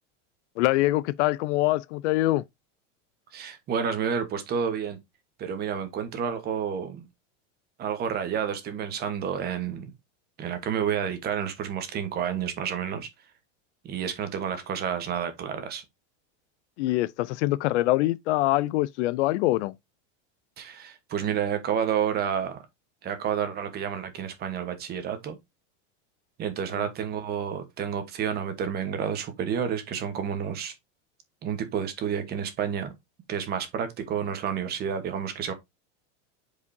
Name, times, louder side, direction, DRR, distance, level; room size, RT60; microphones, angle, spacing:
voice 1, 0.6-2.4 16.8-19.7, left 18 dB, 70° left, 0.5 m, -24 dB
voice 2, 3.3-5.0 5.4-7.0 7.8-9.9 10.4-13.1 13.8-15.8 20.6-22.7 23.0-25.4 26.4-30.7 31.4-32.9 33.3-35.5, right 8 dB, 25° right, 1.2 m, -30 dB
8.1 x 5.0 x 2.7 m
supercardioid pair, 165°, 37 cm